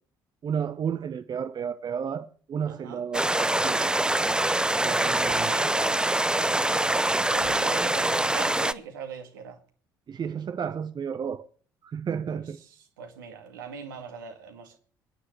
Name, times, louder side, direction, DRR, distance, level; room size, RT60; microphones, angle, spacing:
voice 1, 0.4-4.0 4.8-5.5 10.1-11.5 11.8-12.6, right 7 dB, 40° right, 0.9 m, -32 dB
voice 2, 2.7-3.0 5.3-6.1 6.4-9.6 12.3-14.8, right 7 dB, 75° right, 2.0 m, -41 dB
sound 1, 3.1-8.7, right 1 dB, 10° right, 0.7 m, -24 dB
25.0 x 9.9 x 3.2 m
figure-of-eight pair, 50°, 11 cm